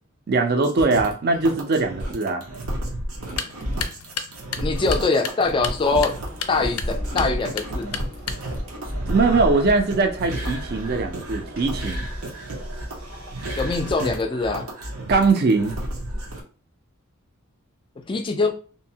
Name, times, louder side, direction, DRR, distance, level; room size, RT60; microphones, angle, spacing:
voice 1, 0.3-2.4 9.1-12.0 15.1-15.7, right 3 dB, 50° right, 0.4 m, -21 dB
sound 1, 0.6-16.4, right 1 dB, 90° right, 0.7 m, -31 dB
sound 2, 3.2-8.7, left 7 dB, 90° left, 0.4 m, -35 dB
voice 2, 4.5-6.2 6.5-8.1 13.6-14.7 18.1-18.5, left 3 dB, 25° left, 0.4 m, -23 dB
Engine, 5.4-14.2, equal, 65° right, 0.9 m, -41 dB
2.6 x 2.0 x 2.7 m
head